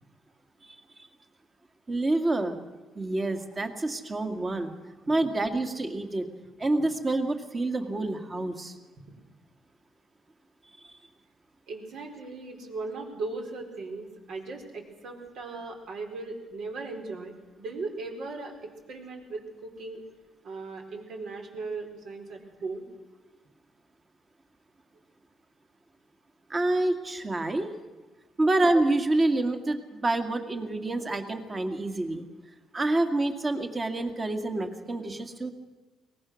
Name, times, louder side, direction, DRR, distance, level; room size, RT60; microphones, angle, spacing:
voice 1, 1.9-2.6 3.0-4.7 5.1-6.3 6.6-8.8 26.5-27.7 28.4-32.2 32.7-35.5, right 2 dB, 25° right, 6 dB, 2.2 m, -27 dB
voice 2, 11.7-20.0 20.4-22.8, right 3 dB, 65° right, 2 dB, 4.5 m, -38 dB
23.0 x 19.0 x 6.5 m, 1.2 s
cardioid pair, 105°, 0 cm